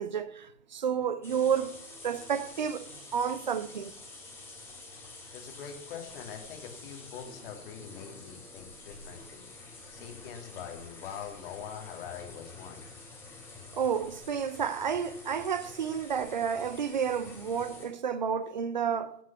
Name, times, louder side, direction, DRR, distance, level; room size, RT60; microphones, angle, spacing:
voice 1, 0.0-3.9 13.7-19.2, right 7 dB, 30° right, 0.5 m, -31 dB
sound 1, 1.2-17.9, left 3 dB, 5° left, 2.8 m, -48 dB
voice 2, 5.0-12.9, left 7 dB, 35° left, 2.3 m, -44 dB
16.0 x 6.2 x 5.9 m
figure-of-eight pair, 125°, 47 cm